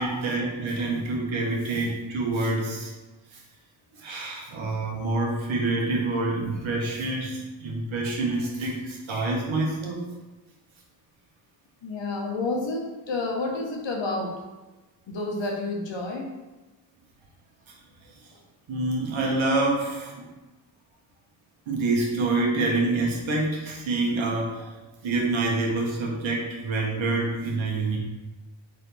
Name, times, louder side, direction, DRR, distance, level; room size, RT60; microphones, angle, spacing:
voice 1, 0.0-2.9 3.3-3.4 4.0-10.0 18.7-20.1 21.7-24.7 25.0-28.0, right 2 dB, 80° right, -1 dB, 1.2 m, -27 dB
voice 2, 11.8-14.3 15.1-16.3, left 2 dB, 70° left, 0 dB, 1.1 m, -30 dB
4.2 x 3.7 x 3.4 m, 1.1 s
cardioid pair, 55°, 46 cm